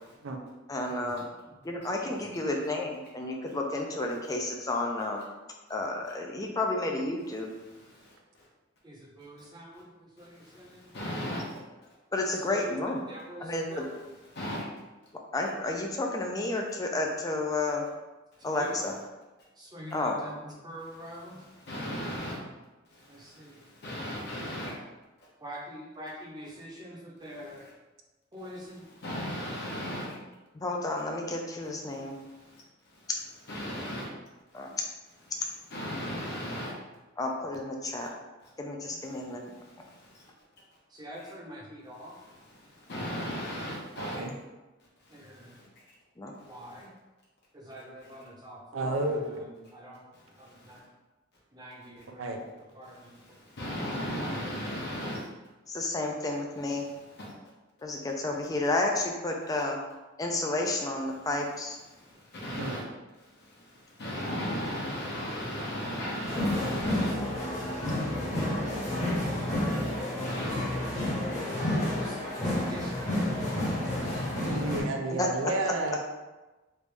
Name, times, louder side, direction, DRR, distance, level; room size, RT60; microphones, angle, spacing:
voice 1, 0.7-1.2 1.6-5.2 5.7-7.5 12.1-13.1 13.4-13.8 15.3-17.8 18.4-18.9 19.9-20.2 30.5-32.1 34.5-34.7 37.2-38.1 38.6-39.5 46.2-46.3 55.7-56.9 57.8-59.8 60.2-61.8 67.7-67.8 75.1-75.5, left 2 dB, 20° left, 1 dB, 0.4 m, -31 dB
voice 2, 1.7-2.2 8.8-10.9 12.5-12.8 13.1-14.0 18.4-18.8 19.6-21.4 23.1-23.6 25.4-27.6 28.3-28.8 38.9-39.0 40.9-42.1 45.1-45.5 46.4-46.9 47.5-50.0 50.4-50.8 51.5-52.4 52.7-53.1 69.1-69.8 71.2-73.9, equal, 20° right, -4 dB, 0.7 m, -45 dB
voice 3, 7.6-8.1 10.2-11.5 14.3-14.6 21.0-22.4 22.9-24.7 27.3-27.7 28.5-30.1 32.0-32.6 33.5-34.1 34.7-34.8 35.3-35.4 35.7-36.7 38.0-38.1 39.3-40.2 42.0-44.2 45.1-45.6 50.4-50.7 52.9-55.2 56.7-57.3 61.8-62.8 63.4-67.2 67.7-68.5 68.8-68.9 69.7-70.6 73.4-73.6 74.2-74.5, equal, 55° left, -6 dB, 0.8 m, -38 dB
voice 4, 44.0-44.3 48.7-49.4 52.2-52.5 62.6-62.8 74.4-76.0, right 2 dB, 80° right, 3 dB, 0.5 m, -31 dB
sound 1, 66.3-74.8, left 1 dB, 35° left, 1.1 m, -30 dB
3.3 x 2.6 x 3.3 m, 1.1 s
head